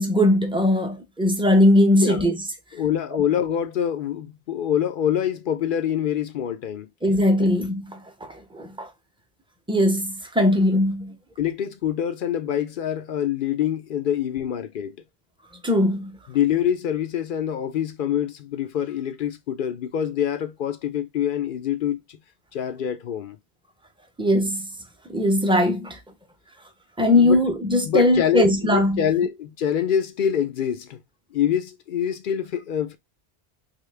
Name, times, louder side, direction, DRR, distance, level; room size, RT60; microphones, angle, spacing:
voice 1, 0.0-2.4 7.0-8.9 9.7-11.1 15.6-16.1 24.2-24.7 25.1-26.0 27.0-29.0, left 1 dB, 5° right, 0.6 m, -20 dB
voice 2, 2.7-6.9 7.4-7.5 11.4-15.0 16.3-22.2 22.5-23.4 27.0-27.4 27.8-31.0 31.3-33.0, left 9 dB, 60° left, 0.7 m, -25 dB
3.7 x 2.8 x 3.2 m
omnidirectional pair, 1.1 m